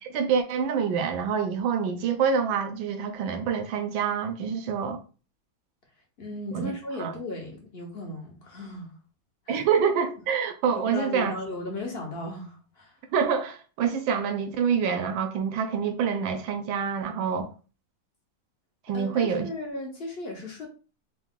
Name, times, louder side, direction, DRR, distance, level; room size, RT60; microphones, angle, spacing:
voice 1, 0.1-5.0 6.5-6.7 7.0-7.1 9.5-11.3 13.1-17.5 18.9-19.5, right 6 dB, 75° right, 1.3 m, -26 dB
voice 2, 6.2-8.9 9.5-9.7 10.9-13.0 18.9-20.7, left 2 dB, 55° left, 0.6 m, -36 dB
4.6 x 2.4 x 3.5 m
omnidirectional pair, 2.2 m